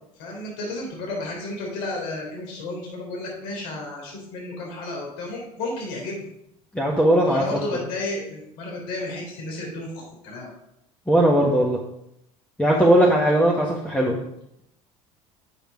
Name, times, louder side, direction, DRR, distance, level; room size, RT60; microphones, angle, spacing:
voice 1, 0.2-6.3 7.2-10.5 12.7-12.9, left 2 dB, 70° left, -1 dB, 3.5 m, -32 dB
voice 2, 6.7-7.4 11.1-11.8 12.6-14.2, right 1 dB, 5° left, -2 dB, 1.4 m, -18 dB
7.9 x 5.1 x 5.1 m, 0.79 s
hypercardioid pair, 75°, 19 cm